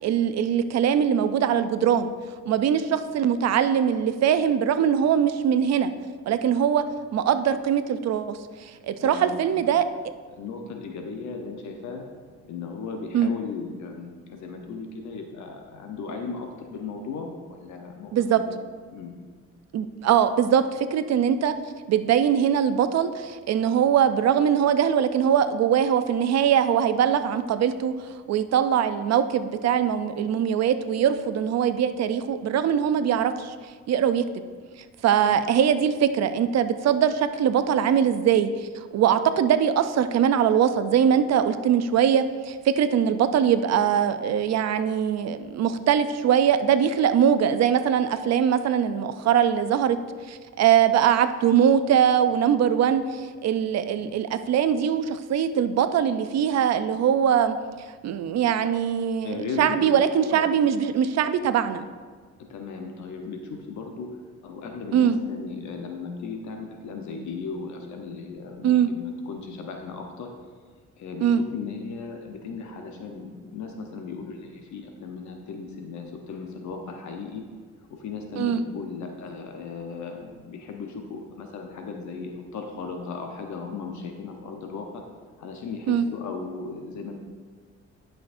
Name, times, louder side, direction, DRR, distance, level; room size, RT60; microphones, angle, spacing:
voice 1, 0.0-2.1 2.5-5.9 6.3-6.8 7.1-9.8 13.1-13.3 18.1-18.4 19.7-21.5 21.9-33.5 33.9-34.2 35.0-38.5 38.9-50.0 50.3-57.6 58.0-61.8 64.9-65.2 68.6-68.9 71.2-71.4 78.4-78.6 85.9-86.1, right 8 dB, 60° right, 11 dB, 0.5 m, -22 dB
voice 2, 9.0-9.7 10.3-12.0 12.5-18.5 18.9-19.1 35.3-35.4 54.0-54.1 59.2-60.0 60.3-60.5 62.5-64.1 64.4-70.3 71.0-77.4 77.9-85.0 85.4-87.2, left 4 dB, 70° left, 3 dB, 0.9 m, -36 dB
11.0 x 5.9 x 2.6 m, 1.5 s
cardioid pair, 90°, 30 cm